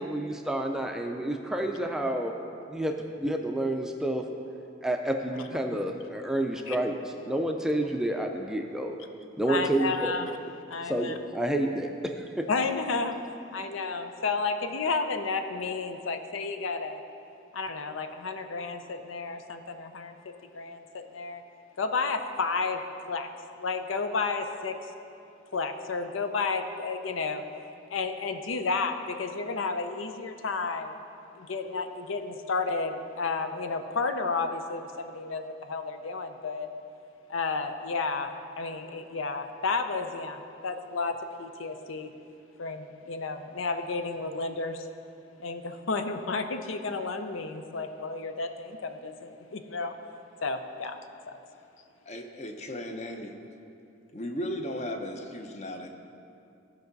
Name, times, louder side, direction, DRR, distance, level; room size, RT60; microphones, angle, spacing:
voice 1, 0.0-2.3 2.7-2.9 3.2-4.2 4.8-7.0 7.2-9.0 9.4-10.1 10.4-10.5 10.8-12.4, right 1 dB, 5° right, 3 dB, 0.4 m, -29 dB
voice 2, 9.5-10.3 10.7-11.2 12.5-13.2 13.5-17.0 17.5-20.2 20.5-21.4 21.8-22.8 23.1-23.3 23.6-24.8 25.5-27.4 27.9-31.0 31.4-36.7 37.3-42.1 42.6-44.9 45.4-49.9 50.4-51.0 51.3-51.4, left 4 dB, 85° left, 8 dB, 0.6 m, -32 dB
voice 3, 52.1-53.3 54.1-55.9, left 1 dB, 35° left, 4 dB, 0.7 m, -36 dB
15.5 x 5.4 x 4.0 m, 2.6 s
head